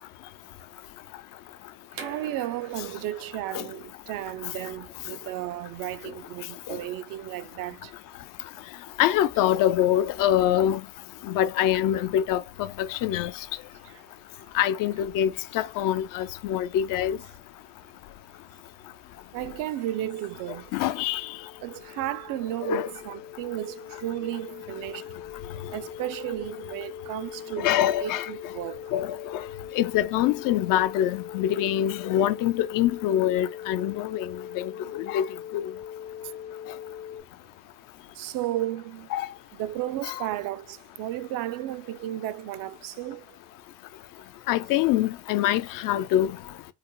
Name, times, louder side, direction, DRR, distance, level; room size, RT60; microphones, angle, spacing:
voice 1, 1.9-7.9 13.8-14.0 19.3-20.7 21.6-25.2 25.7-27.7 28.0-28.9 34.8-34.9 38.2-39.1 39.6-43.2, right 14 dB, 45° right, 0.5 m, -34 dB
sound 1, 1.9-7.5, right 5 dB, 85° right, 1.2 m, -47 dB
voice 2, 9.0-10.8 11.2-13.3 14.5-17.2 20.7-21.3 22.7-22.9 27.6-28.3 28.9-29.4 29.8-34.3 34.6-35.3 35.5-35.7 39.1-39.3 40.0-40.3 44.5-46.4, left 11 dB, 45° left, 0.5 m, -25 dB
sound 2, 20.3-37.2, left 9 dB, 65° left, 1.0 m, -41 dB
3.8 x 2.0 x 3.0 m
hypercardioid pair, 75°, 48 cm